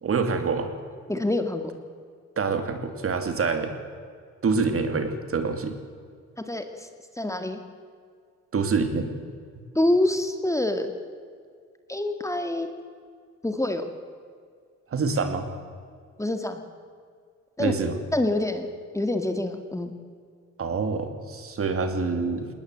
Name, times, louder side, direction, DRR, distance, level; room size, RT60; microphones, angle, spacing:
voice 1, 0.0-0.7 2.4-3.7 4.4-5.8 8.5-9.1 14.9-15.5 17.6-18.0 20.6-22.5, right 4 dB, 50° right, 7 dB, 2.8 m, -26 dB
voice 2, 1.1-1.7 6.5-6.9 7.2-7.6 9.8-10.9 11.9-12.7 13.4-13.9 16.2-16.6 17.6-17.7 18.1-18.7 18.9-19.9, left 1 dB, 10° left, 6 dB, 2.0 m, -26 dB
20.0 x 19.5 x 8.0 m, 2.1 s
cardioid pair, 90°, 30 cm